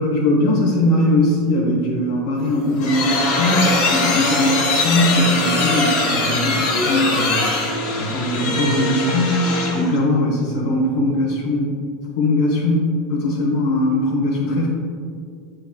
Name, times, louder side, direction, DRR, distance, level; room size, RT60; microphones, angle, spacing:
voice 1, 0.0-7.5 8.0-11.8 12.2-12.8 13.1-14.7, left 1 dB, 80° left, -4 dB, 1.2 m, -20 dB
sound 1, 2.4-9.9, left 2 dB, 55° left, 1.3 m, -21 dB
8.1 x 6.3 x 2.3 m, 2.3 s
supercardioid pair, 140°, 2 cm